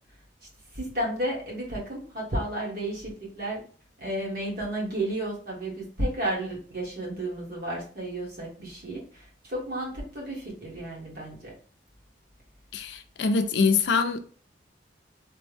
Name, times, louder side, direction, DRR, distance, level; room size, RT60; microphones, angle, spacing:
voice 1, 0.7-3.6 4.0-11.5, right 1 dB, 55° right, 1.4 m, -32 dB
voice 2, 12.7-14.2, left 4 dB, 65° left, 0.4 m, -24 dB
3.3 x 2.1 x 3.2 m
head